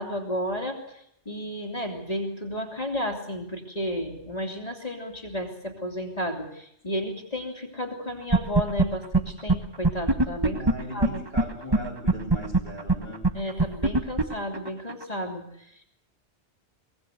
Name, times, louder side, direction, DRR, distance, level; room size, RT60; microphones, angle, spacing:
voice 1, 0.0-10.6 10.9-11.2 13.3-15.8, equal, 35° left, 3 dB, 2.9 m, -32 dB
sound 1, 8.3-8.9 9.1-9.2 9.5-9.6 9.8-11.4 11.7-11.8 12.1-15.0, right 2 dB, 20° right, 1.2 m, -20 dB
voice 2, 10.5-13.2, equal, 60° right, -1 dB, 7.7 m, -37 dB
23.5 x 18.5 x 8.0 m, 0.73 s
omnidirectional pair, 1.2 m